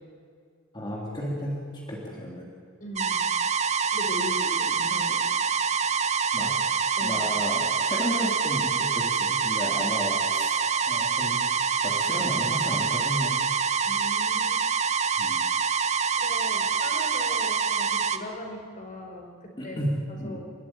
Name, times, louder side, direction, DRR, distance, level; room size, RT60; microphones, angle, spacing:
voice 1, 0.7-2.5 6.3-6.5 7.0-10.6 10.9-11.4 11.8-13.4 15.2-15.4 19.6-20.4, equal, 25° left, -4 dB, 3.2 m, -33 dB
voice 2, 2.8-3.2 3.9-5.2 7.0-7.2 13.9-14.6 16.2-20.5, left 1 dB, 40° left, 2 dB, 4.3 m, -39 dB
sound 1, 3.0-18.2, right 6 dB, 35° right, 1.0 m, -26 dB
29.0 x 14.0 x 9.9 m, 2.2 s
head